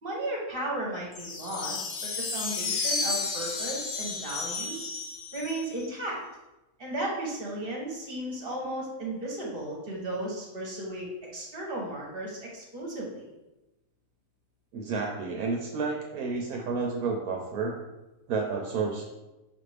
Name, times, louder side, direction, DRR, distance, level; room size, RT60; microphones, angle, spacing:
voice 1, 0.0-4.9 5.3-6.2 6.8-13.3, right 1 dB, 40° right, -3 dB, 1.0 m, -35 dB
sound 1, 1.1-5.9, left 4 dB, 80° left, 1.3 m, -32 dB
voice 2, 14.7-17.7 18.3-19.1, right 4 dB, 75° right, 1 dB, 1.0 m, -30 dB
5.6 x 2.5 x 3.3 m, 1.0 s
omnidirectional pair, 1.7 m